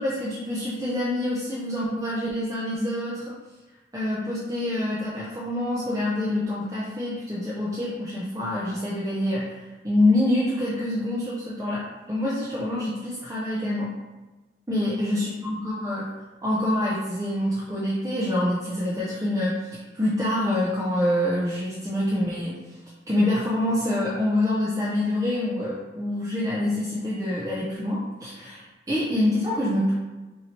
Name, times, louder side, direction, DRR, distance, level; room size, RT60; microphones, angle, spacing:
voice 1, 0.0-3.3 3.9-13.9 14.7-16.1 16.4-22.8 23.1-29.9, left 1 dB, 15° right, -7 dB, 0.5 m, -26 dB
3.0 x 2.7 x 4.3 m, 1.2 s
head